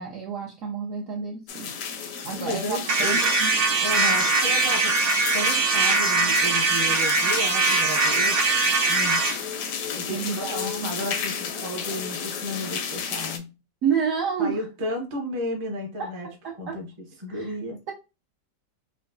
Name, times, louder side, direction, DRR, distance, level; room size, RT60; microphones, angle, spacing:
voice 1, 0.0-1.8 2.1-3.5 10.1-10.9 13.8-14.6 16.0-16.8 17.3-17.6, right 6 dB, 75° right, 0.7 m, -30 dB
sound 1, 1.5-13.4, left 6 dB, 70° left, 0.8 m, -32 dB
voice 2, 2.2-3.2 3.8-9.2 9.9-13.5 14.4-16.3 16.6-17.8, left 1 dB, 40° right, 0.4 m, -33 dB
sound 2, 2.9-9.4, right 4 dB, 90° right, 1.4 m, -22 dB
4.7 x 2.2 x 2.5 m
omnidirectional pair, 1.9 m